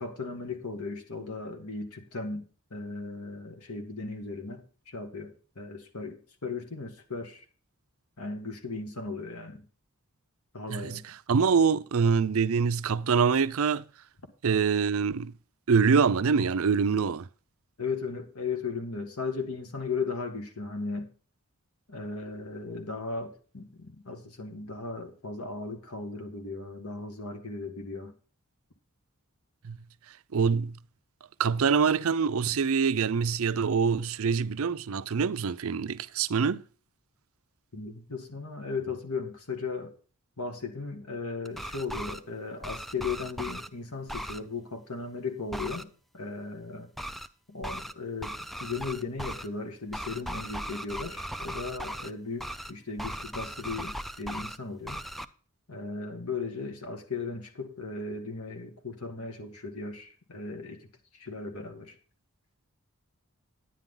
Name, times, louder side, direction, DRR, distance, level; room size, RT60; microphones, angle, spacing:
voice 1, 0.0-2.4 2.7-7.4 8.2-9.6 10.5-11.0 17.8-21.1 21.9-28.1 37.7-39.9 40.4-45.9 46.1-46.9 47.5-48.4 48.6-55.0 55.7-60.8 61.1-62.0, left 4 dB, 85° left, 2.0 m, -36 dB
voice 2, 10.7-13.8 14.4-15.3 15.7-17.3 29.6-29.8 30.3-30.8 31.4-36.6, right 5 dB, 70° right, 0.5 m, -25 dB
sound 1, 41.4-42.2 42.6-43.7 44.1-44.4 45.5-45.8 47.0-47.3 47.6-47.9 48.2-49.5 49.9-52.1 52.4-52.7 53.0-54.6 54.9-55.2, equal, ahead, 0.4 m, -37 dB
10.5 x 9.9 x 3.8 m
head